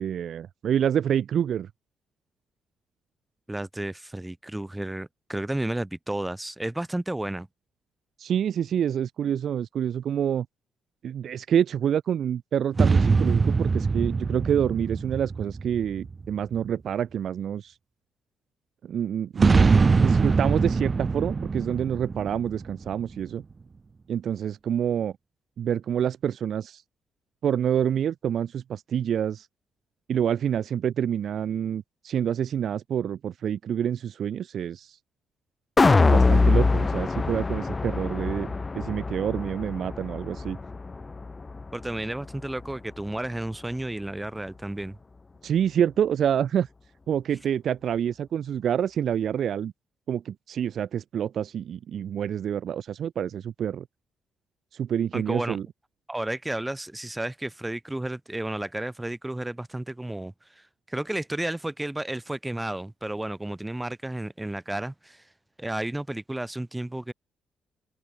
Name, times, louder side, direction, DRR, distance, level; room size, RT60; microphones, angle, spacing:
voice 1, 0.0-1.7 8.2-10.5 11.0-17.7 18.8-19.6 20.0-23.4 24.1-25.1 25.6-26.8 27.4-29.5 30.1-35.0 36.0-40.6 45.4-46.7 47.1-49.7 50.1-53.8 54.7-55.6, right 9 dB, 60° right, 0.6 m, -27 dB
voice 2, 3.5-7.5 41.7-45.0 55.1-55.6 56.1-65.3 65.6-67.1, right 1 dB, 10° right, 1.8 m, -32 dB
sound 1, 12.8-16.4 19.4-23.2, right 4 dB, 30° right, 1.8 m, -23 dB
sound 2, 35.8-42.0 42.4-42.5, left 3 dB, 25° left, 2.6 m, -23 dB
cardioid pair, 90°, 0 cm